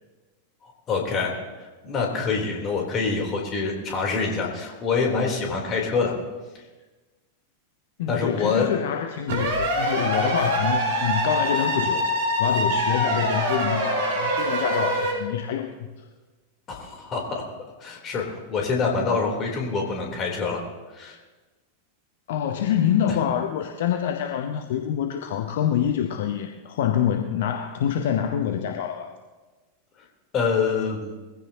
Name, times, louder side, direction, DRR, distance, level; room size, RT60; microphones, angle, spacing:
voice 1, 0.9-1.3 1.8-6.1 8.1-8.7 16.7-17.5 17.8-20.6 20.9-21.2 30.3-31.1, left 4 dB, 30° left, 0 dB, 3.7 m, -25 dB
voice 2, 8.0-12.1 12.4-15.9 22.3-29.1, left 9 dB, 55° left, 5 dB, 1.0 m, -26 dB
sound 1, 9.3-15.1, equal, 55° right, 4.6 m, -24 dB
22.0 x 15.5 x 3.0 m, 1.3 s
figure-of-eight pair, 90°, 0 cm